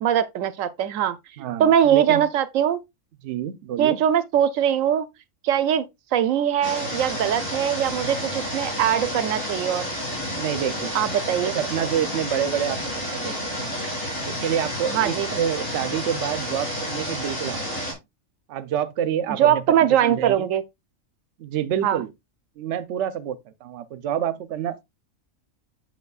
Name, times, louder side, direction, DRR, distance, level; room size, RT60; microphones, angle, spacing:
voice 1, 0.0-2.8 3.8-5.1 5.4-5.8 6.1-9.9 10.9-11.5 14.9-15.3 19.3-20.6 21.8-22.0, right 10 dB, 85° right, 1.0 m, -21 dB
voice 2, 1.4-2.2 3.2-4.0 10.3-11.0 11.4-13.7 14.2-17.7 18.5-19.7 20.0-20.5 21.4-22.1 22.6-24.8, right 9 dB, 65° right, 0.9 m, -28 dB
sound 1, 6.6-17.9, equal, 60° left, 3.8 m, -30 dB
8.1 x 6.5 x 2.3 m
omnidirectional pair, 1.3 m